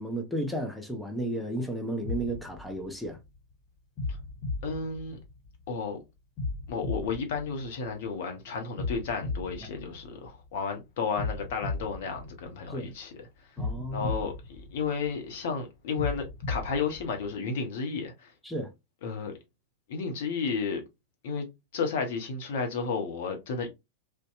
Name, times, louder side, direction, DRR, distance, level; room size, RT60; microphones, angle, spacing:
voice 1, 0.0-3.2 12.7-12.9 13.6-14.1 18.4-18.7, right 1 dB, ahead, 0.5 m, -33 dB
sound 1, 2.0-3.4 4.0-5.7 6.4-8.2 8.8-10.6 11.2-13.0 13.6-15.3 16.0-17.4, left 3 dB, 35° left, 1.1 m, -36 dB
voice 2, 4.6-5.2 5.7-6.0 6.7-13.3 13.9-18.3 19.0-19.3 19.9-20.8 21.2-23.7, left 5 dB, 55° left, 0.7 m, -32 dB
2.6 x 2.2 x 2.5 m
figure-of-eight pair, 90°, 0 cm